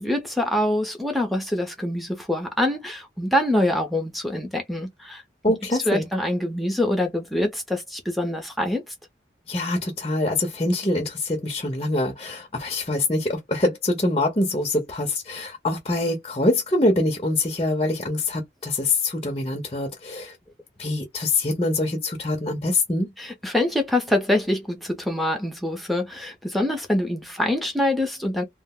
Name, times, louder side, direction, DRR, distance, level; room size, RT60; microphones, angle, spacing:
voice 1, 0.0-5.2 5.5-5.6 5.9-8.9 23.2-28.4, left 1 dB, ahead, 0.7 m, -25 dB
voice 2, 5.4-6.1 9.5-20.4 20.8-23.1, left 2 dB, 30° left, 0.7 m, -24 dB
2.4 x 2.1 x 3.7 m
head